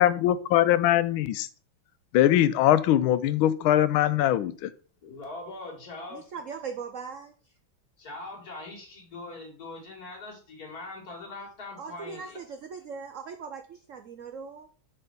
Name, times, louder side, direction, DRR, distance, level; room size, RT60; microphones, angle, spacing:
voice 1, 0.0-1.5 2.1-4.7, left 12 dB, 85° left, 14 dB, 1.4 m, -22 dB
voice 2, 5.0-6.2 8.0-12.4, left 2 dB, 50° left, 1 dB, 2.5 m, -41 dB
voice 3, 6.1-7.3 11.8-14.7, right 5 dB, 90° right, 8 dB, 0.6 m, -39 dB
6.5 x 4.4 x 5.2 m, 0.39 s
omnidirectional pair, 2.2 m